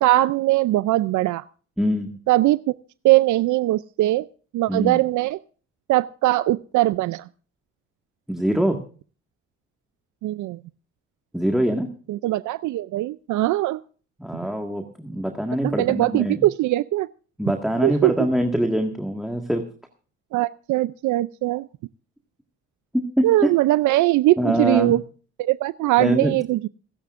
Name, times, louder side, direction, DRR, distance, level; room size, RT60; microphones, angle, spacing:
voice 1, 0.0-1.4 2.3-2.6 3.0-4.3 4.5-5.4 5.9-7.3 10.2-10.6 12.1-13.8 15.6-17.1 17.8-18.1 20.3-21.7 23.2-25.0 25.4-26.7, right 17 dB, 75° right, 16 dB, 0.5 m, -20 dB
voice 2, 1.8-2.2 4.7-5.0 8.3-8.8 11.3-11.9 14.2-16.4 17.4-19.6 23.2-23.5 24.4-24.9 26.0-26.4, equal, ahead, 4 dB, 1.7 m, -23 dB
27.0 x 10.5 x 2.5 m, 0.41 s
cardioid pair, 90°, 30 cm